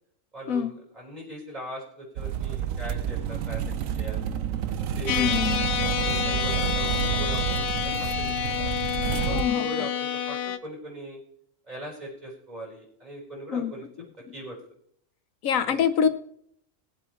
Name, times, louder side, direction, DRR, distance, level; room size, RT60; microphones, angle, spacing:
voice 1, 0.3-4.3 4.9-8.3 8.6-8.7 9.2-11.2 11.7-13.9 14.3-14.6 15.7-16.1, right 1 dB, 30° right, 4.7 m, -40 dB
sound 1, 2.2-9.4, right 9 dB, 80° right, 1.1 m, -29 dB
voice 2, 5.1-5.6 9.3-9.7 13.5-13.7 15.4-16.1, left 7 dB, 85° left, 1.2 m, -25 dB
sound 2, 5.1-10.6, left 8 dB, 55° left, 0.8 m, -28 dB
20.0 x 7.8 x 3.1 m
omnidirectional pair, 1.4 m